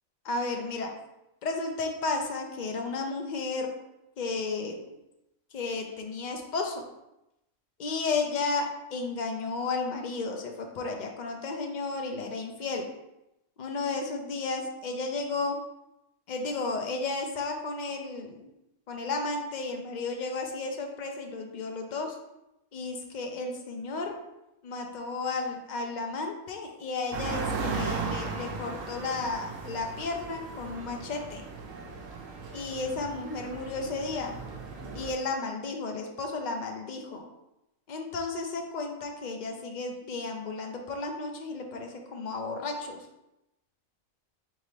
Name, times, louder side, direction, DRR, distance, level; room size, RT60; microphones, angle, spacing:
voice 1, 0.2-0.9 1.4-3.7 4.2-4.9 5.5-6.8 7.8-12.9 13.6-15.6 16.3-18.5 18.9-22.2 22.7-24.1 24.6-31.4 32.5-34.3 34.9-37.3 37.9-43.1, left 3 dB, 60° left, 3 dB, 0.4 m, -33 dB
sound 1, 27.1-35.1, right 4 dB, 75° right, 1.0 m, -36 dB
4.1 x 3.6 x 3.2 m, 0.90 s
omnidirectional pair, 1.4 m